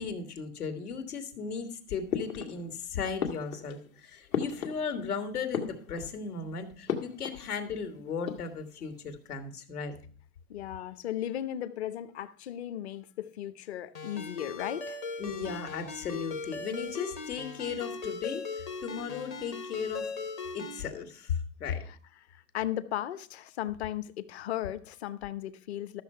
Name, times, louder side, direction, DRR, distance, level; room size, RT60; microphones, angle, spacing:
voice 1, 0.0-9.9 15.2-20.1 20.5-21.8, left 6 dB, 90° left, 2.4 m, -36 dB
sound 1, 2.1-2.8 3.2-5.1 5.4-6.3 6.9-7.5 7.7-7.8 8.1-8.8, left 7 dB, 65° left, 2.0 m, -35 dB
voice 2, 10.5-15.0 21.9-22.0 22.3-26.0, left 12 dB, 45° left, 0.9 m, -36 dB
Ringtone, 13.9-20.8, left 4 dB, 15° left, 0.5 m, -39 dB
13.0 x 6.6 x 5.7 m
hypercardioid pair, 160°, 44 cm